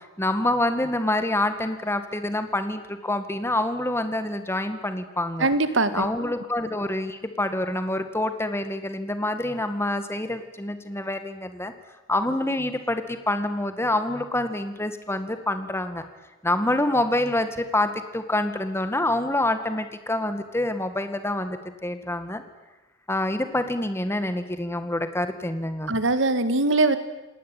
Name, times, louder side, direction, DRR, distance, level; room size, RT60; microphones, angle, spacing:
voice 1, 0.2-5.5 5.9-11.7 12.1-16.0 16.4-22.4 23.1-25.9, left 1 dB, 15° left, 9 dB, 2.0 m, -26 dB
voice 2, 5.4-6.1 25.9-27.0, right 2 dB, 80° right, 12 dB, 2.0 m, -21 dB
28.0 x 19.0 x 9.2 m, 1.1 s
head